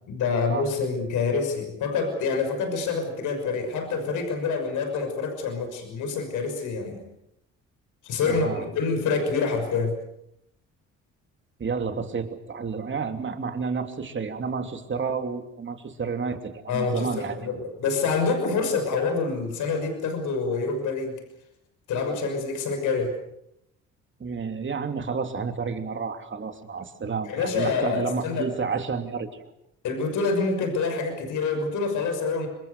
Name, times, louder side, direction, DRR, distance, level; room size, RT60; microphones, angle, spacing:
voice 1, 0.1-7.0 8.0-10.0 16.7-17.1 17.4-21.2 21.9-23.1 27.2-28.5 29.8-32.5, left 4 dB, 80° left, 5 dB, 6.1 m, -26 dB
voice 2, 8.3-8.6 11.6-17.5 24.2-29.4, right 5 dB, 40° right, 6 dB, 3.0 m, -30 dB
27.0 x 22.5 x 6.7 m, 0.79 s
cardioid pair, 90°, 30 cm